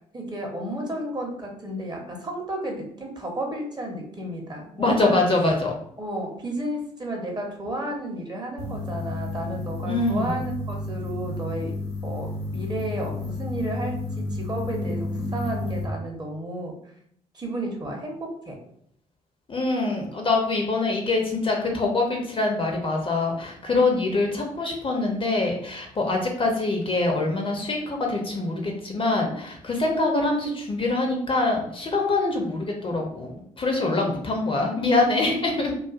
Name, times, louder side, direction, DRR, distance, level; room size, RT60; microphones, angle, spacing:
voice 1, 0.1-5.2 6.0-11.7 12.0-16.8 17.3-18.6, right 1 dB, 25° right, 1 dB, 0.8 m, -32 dB
voice 2, 4.8-5.7 9.8-10.3 19.5-35.7, left 2 dB, 30° left, 1 dB, 0.6 m, -24 dB
sound 1, 8.6-15.8, left 2 dB, 85° left, 0.8 m, -31 dB
2.5 x 2.3 x 2.4 m, 0.68 s
figure-of-eight pair, 45°, 17 cm